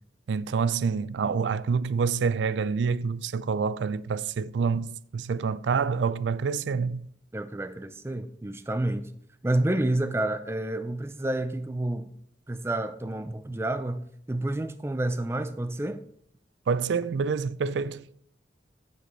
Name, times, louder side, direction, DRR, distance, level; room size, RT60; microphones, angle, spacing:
voice 1, 0.3-7.1 16.7-18.1, right 5 dB, 90° right, 0.4 m, -27 dB
voice 2, 7.3-9.1 9.4-12.1 12.5-16.0, right 1 dB, 15° right, 0.4 m, -29 dB
14.5 x 5.3 x 3.2 m
head